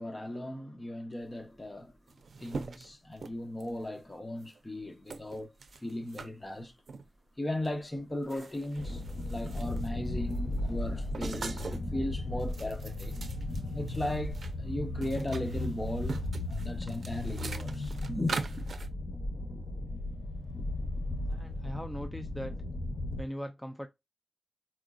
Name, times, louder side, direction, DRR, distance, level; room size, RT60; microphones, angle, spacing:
voice 1, 0.0-1.9 2.4-6.7 7.4-13.2 13.7-18.4, left 1 dB, 25° left, 0.8 m, -37 dB
sound 1, 1.6-1.7 1.9-3.9 4.4-4.6 5.1-6.3 6.9-7.1 7.6-7.8 8.1-10.0 10.3-11.9 12.3-14.5 14.8-18.9, right 4 dB, 85° right, 0.5 m, -42 dB
sound 2, 8.7-23.2, left 1 dB, 65° left, 0.8 m, -36 dB
sound 3, 13.0-20.2, left 1 dB, 40° left, 1.1 m, -46 dB
voice 2, 21.3-22.5 23.2-23.9, equal, 5° left, 0.4 m, -40 dB
4.3 x 2.3 x 2.4 m
wide cardioid pair, 80°, 0 cm